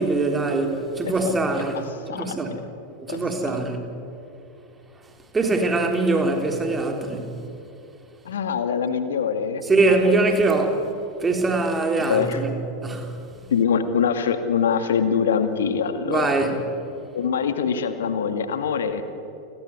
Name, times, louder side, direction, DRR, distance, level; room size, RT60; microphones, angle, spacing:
voice 1, 0.0-2.5 3.1-3.8 5.3-7.3 9.7-10.8 11.2-12.6 12.8-13.2 16.1-16.6, right 3 dB, 15° right, 3.8 m, -22 dB
voice 2, 2.1-2.6 3.1-3.5 8.3-9.6 9.9-10.2 12.0-12.4 13.5-16.4 17.1-19.0, left 7 dB, 65° left, 2.1 m, -24 dB
30.0 x 19.5 x 9.8 m
figure-of-eight pair, 90°, 0 cm